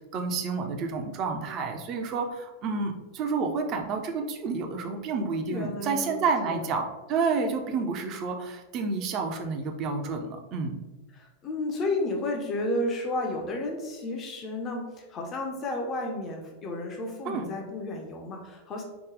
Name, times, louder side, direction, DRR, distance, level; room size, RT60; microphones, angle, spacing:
voice 1, 0.1-10.8 17.2-17.5, right 4 dB, 35° right, 4 dB, 0.6 m, -30 dB
voice 2, 5.5-6.6 11.1-18.8, left 2 dB, 30° left, 1 dB, 0.7 m, -32 dB
4.8 x 2.3 x 3.7 m, 1.1 s
figure-of-eight pair, 90°, 0 cm